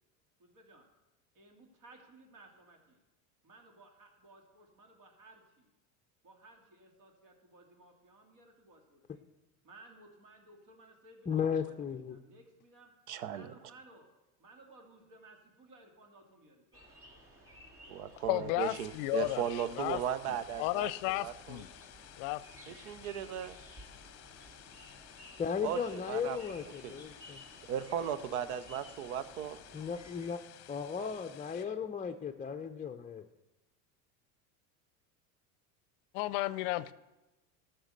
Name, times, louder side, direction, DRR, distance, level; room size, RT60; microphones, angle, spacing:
voice 1, 0.4-0.9 1.3-3.0 3.4-5.7 6.2-9.2 9.6-12.9 13.3-14.1 14.4-16.9, right 2 dB, 50° right, 3.1 m, -58 dB
voice 2, 11.3-12.2 25.4-27.4 29.7-30.4 30.7-33.3, left 7 dB, 20° left, 0.6 m, -36 dB
voice 3, 13.1-13.5 17.9-21.6 22.7-23.6 25.6-26.4 26.8-27.0 27.7-29.6, right 9 dB, 75° right, 1.0 m, -37 dB
sound 1, 16.7-30.3, equal, 30° right, 2.8 m, -56 dB
voice 4, 18.3-20.0 20.6-21.7 22.2-22.4 36.1-36.9, left 19 dB, 65° left, 0.6 m, -33 dB
sound 2, 18.6-31.7, left 12 dB, 35° left, 0.9 m, -55 dB
14.5 x 6.2 x 6.6 m
hypercardioid pair, 95°, 43 cm